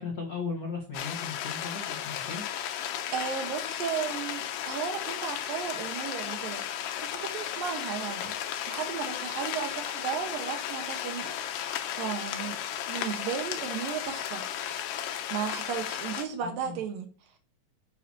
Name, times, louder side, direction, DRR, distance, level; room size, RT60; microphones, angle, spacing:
voice 1, 0.0-2.4 16.4-16.8, left 4 dB, 55° left, 1.0 m, -37 dB
sound 1, 0.9-16.3, left 10 dB, 80° left, 2.4 m, -34 dB
voice 2, 3.1-6.7 7.0-8.3 8.7-11.3 11.9-12.6 12.9-14.4 15.3-17.1, right 7 dB, 85° right, 3.0 m, -34 dB
9.0 x 7.9 x 2.8 m
omnidirectional pair, 3.9 m